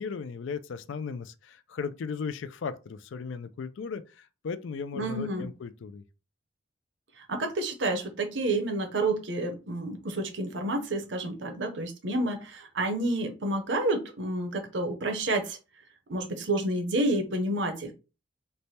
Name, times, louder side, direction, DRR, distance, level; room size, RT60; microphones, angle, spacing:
voice 1, 0.0-6.0, left 5 dB, 65° left, 0.4 m, -36 dB
voice 2, 4.9-5.5 7.2-15.6 16.1-17.9, right 2 dB, 60° right, 0.7 m, -29 dB
3.3 x 2.1 x 4.1 m
head